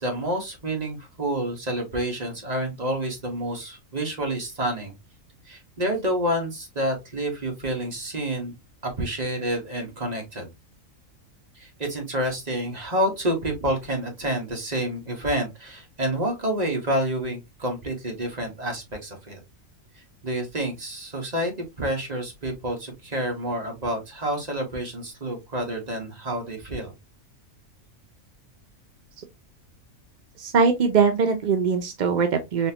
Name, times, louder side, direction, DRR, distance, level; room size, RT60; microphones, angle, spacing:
voice 1, 0.0-4.9 5.5-8.6 8.8-10.5 11.5-19.4 20.2-26.9, right 1 dB, 30° right, 1.4 m, -28 dB
voice 2, 30.4-32.7, right 5 dB, 55° right, 0.5 m, -21 dB
4.2 x 3.1 x 2.8 m
omnidirectional pair, 1.4 m